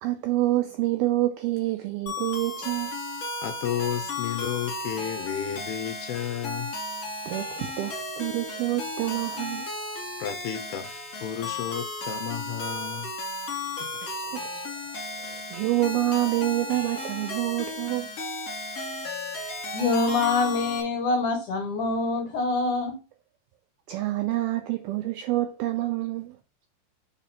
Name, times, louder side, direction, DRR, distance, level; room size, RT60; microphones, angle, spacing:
voice 1, 0.0-2.9 7.3-9.7 14.0-14.8 15.1-18.1 23.9-26.4, right 16 dB, 85° right, 2.1 m, -27 dB
sound 1, 2.1-20.8, left 2 dB, 40° left, 2.9 m, -34 dB
voice 2, 3.4-6.7 10.2-13.1 13.8-14.1, left 10 dB, 80° left, 2.4 m, -32 dB
voice 3, 19.7-22.9, left 3 dB, 60° left, 2.3 m, -25 dB
6.7 x 4.1 x 5.6 m
omnidirectional pair, 5.0 m